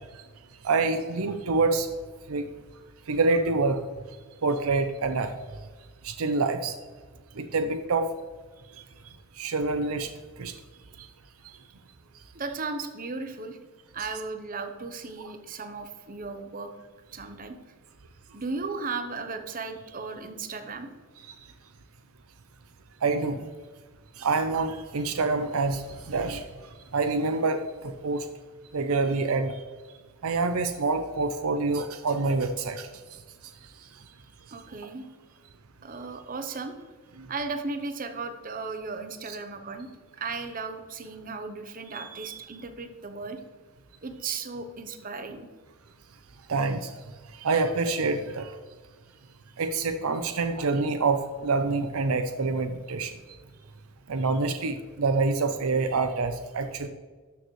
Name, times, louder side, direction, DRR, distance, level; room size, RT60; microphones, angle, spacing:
voice 1, 0.6-1.9 2.3-2.5 3.1-3.8 4.4-5.3 6.0-6.7 7.4-8.1 9.4-10.1 10.4-10.5 23.0-23.4 24.2-26.4 26.9-28.3 28.7-29.6 30.2-32.9 46.5-46.9 47.4-48.5 49.6-53.1 54.1-56.9, right 3 dB, 70° right, 8 dB, 0.6 m, -26 dB
voice 2, 12.3-13.6 13.9-16.7 17.1-17.6 18.3-20.9 34.5-35.1 35.8-36.8 37.3-39.9 40.2-43.4 44.0-45.5 53.6-53.7, right 4 dB, 40° right, 7 dB, 0.8 m, -36 dB
12.5 x 6.6 x 3.2 m, 1.4 s
head